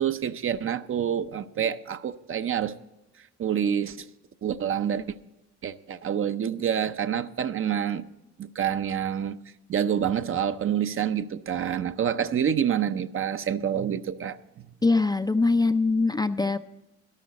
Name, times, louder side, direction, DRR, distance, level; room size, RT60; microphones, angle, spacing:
voice 1, 0.0-2.7 3.4-4.1 4.4-5.1 5.6-8.0 8.4-9.4 9.7-14.4, right 9 dB, 45° right, 0.6 m, -27 dB
voice 2, 14.8-16.6, left 3 dB, 15° left, 0.4 m, -22 dB
12.5 x 12.0 x 4.0 m
cardioid pair, 90°, 30 cm